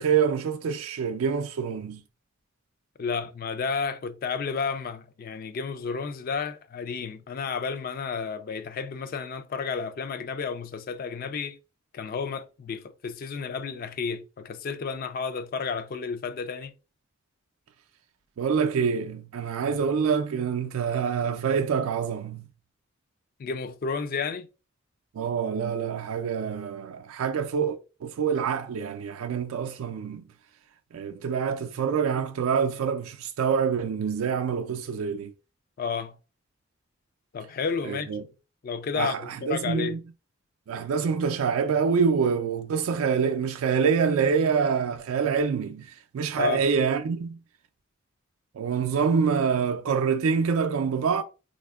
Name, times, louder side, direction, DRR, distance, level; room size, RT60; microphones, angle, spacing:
voice 1, 0.0-2.0 18.4-22.5 25.1-30.2 30.9-35.3 37.8-38.2 39.0-40.0 40.7-47.4 48.6-51.2, right 6 dB, 90° right, 0.4 m, -26 dB
voice 2, 3.0-11.6 11.9-16.7 23.4-24.5 35.8-36.2 37.3-38.1 38.6-40.0 46.4-46.6, left 5 dB, 45° left, 0.3 m, -31 dB
4.1 x 2.6 x 2.3 m
head